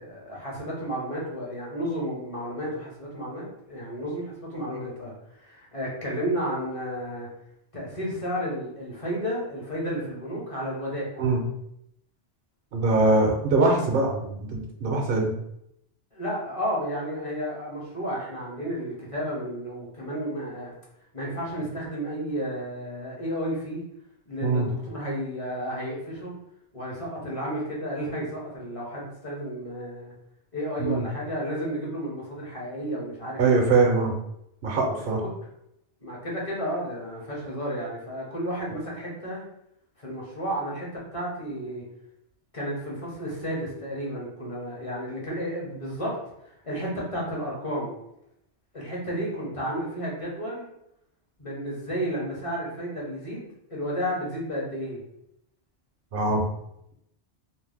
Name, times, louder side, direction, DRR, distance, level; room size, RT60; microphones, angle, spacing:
voice 1, 0.0-7.3 7.7-11.3 13.6-13.7 16.1-20.7 21.1-23.8 24.3-26.3 26.7-30.1 30.5-33.6 35.2-35.3 36.0-39.4 40.0-41.8 42.5-46.2 46.4-47.9 48.7-50.7 51.4-55.0, equal, 35° left, -4 dB, 0.8 m, -32 dB
voice 2, 12.7-15.3 24.4-24.7 30.8-31.0 33.4-34.1 34.6-35.2 56.1-56.5, right 3 dB, 60° right, 2 dB, 0.8 m, -22 dB
2.6 x 2.1 x 3.3 m, 0.78 s
omnidirectional pair, 1.2 m